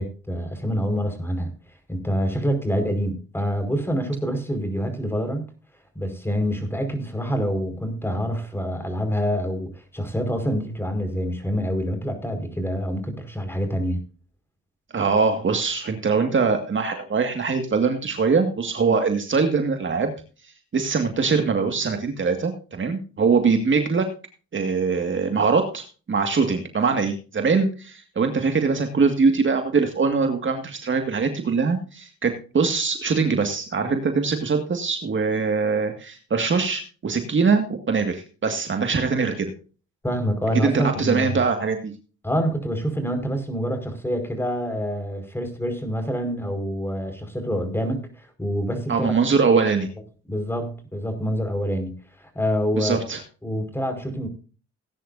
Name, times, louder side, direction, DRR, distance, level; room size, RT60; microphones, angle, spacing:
voice 1, 0.0-1.5 1.9-5.4 5.9-14.0 40.0-41.4 42.2-49.1 50.3-53.0 53.4-54.3, equal, 10° left, 6 dB, 5.0 m, -26 dB
voice 2, 14.9-20.1 20.4-24.1 24.5-39.5 40.6-41.9 48.9-49.9 52.7-53.2, right 5 dB, 40° right, 5 dB, 2.0 m, -22 dB
19.0 x 10.0 x 2.6 m, 0.36 s
cardioid pair, 90°, 30 cm